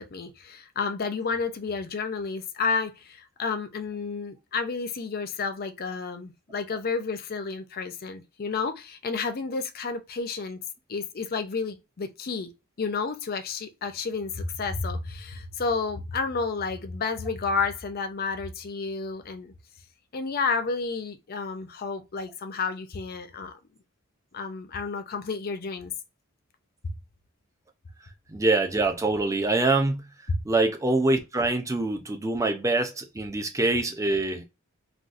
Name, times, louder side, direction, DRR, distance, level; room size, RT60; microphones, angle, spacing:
voice 1, 0.0-10.6 10.9-12.5 12.8-19.5 20.1-23.6 24.3-25.9 30.3-30.4, left 4 dB, 45° left, 0.5 m, -31 dB
voice 2, 28.3-30.1 30.4-34.4, right 2 dB, 15° right, 0.5 m, -25 dB
3.9 x 2.2 x 2.4 m
head